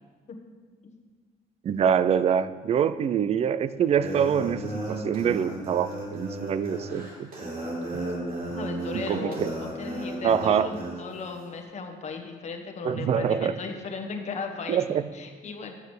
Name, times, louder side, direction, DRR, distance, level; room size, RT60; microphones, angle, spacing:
voice 1, 1.6-7.3 7.9-8.1 9.1-9.5 10.2-10.7 12.8-13.5 14.7-15.0, right 8 dB, 40° right, 15 dB, 0.4 m, -25 dB
sound 1, 4.0-11.0, right 1 dB, 55° right, 3.1 m, -34 dB
voice 2, 8.5-15.7, left 4 dB, 40° left, 4 dB, 1.2 m, -36 dB
6.9 x 6.8 x 6.3 m, 1.5 s
cardioid pair, 110°, 17 cm